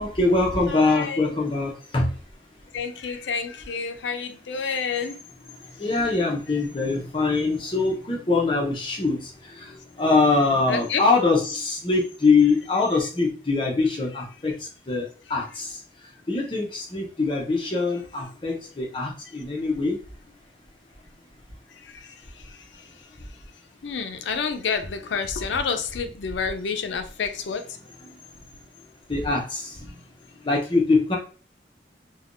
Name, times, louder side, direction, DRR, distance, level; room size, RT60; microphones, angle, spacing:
voice 1, 0.0-2.1 5.6-15.8 16.3-20.0 28.1-28.2 29.1-29.8 30.4-31.2, left 3 dB, 30° left, -1 dB, 0.7 m, -23 dB
voice 2, 0.7-1.4 2.7-5.2 5.8-5.9 6.5-6.6 10.7-11.0 19.3-19.4 21.7-23.1 23.8-27.8, left 5 dB, 90° left, 7 dB, 0.4 m, -30 dB
3.3 x 2.2 x 2.5 m, 0.38 s
head